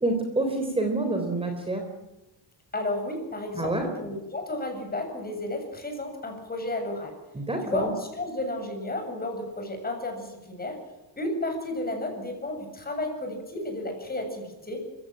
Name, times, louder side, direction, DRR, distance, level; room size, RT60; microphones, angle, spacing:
voice 1, 0.0-1.8 3.5-3.9 7.3-7.9, right 2 dB, 15° right, 4 dB, 3.8 m, -27 dB
voice 2, 2.7-7.1 7.6-10.8 11.2-14.8, left 2 dB, 20° left, 4 dB, 7.6 m, -32 dB
24.5 x 16.0 x 9.0 m, 1.1 s
cardioid pair, 125°, 41 cm